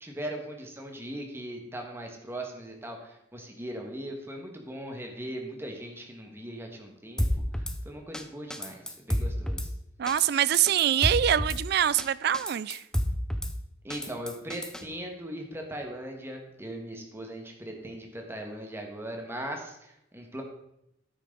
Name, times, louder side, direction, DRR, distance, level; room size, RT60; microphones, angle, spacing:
voice 1, 0.0-7.3 7.8-9.7 13.8-20.4, right 1 dB, 15° right, 1.6 m, -39 dB
Drum kit / Snare drum, 7.2-7.8 8.1-8.2 8.5-9.7 10.1-10.3 10.5-11.6 12.0-12.1 12.3-13.5 13.9-14.8, equal, 5° left, 0.6 m, -30 dB
voice 2, 10.0-12.8, right 10 dB, 60° right, 0.3 m, -24 dB
10.0 x 8.8 x 3.9 m
head